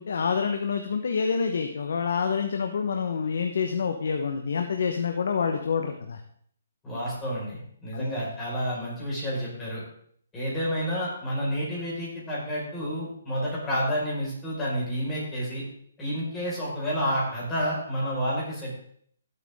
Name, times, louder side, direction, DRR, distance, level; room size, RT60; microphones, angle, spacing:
voice 1, 0.0-6.2 7.9-8.1, left 6 dB, 65° left, 5 dB, 1.1 m, -27 dB
voice 2, 6.8-9.8 10.3-15.6 16.0-18.8, equal, 10° left, -6 dB, 5.1 m, -30 dB
17.0 x 8.2 x 3.7 m, 0.62 s
hypercardioid pair, 165°, 0 cm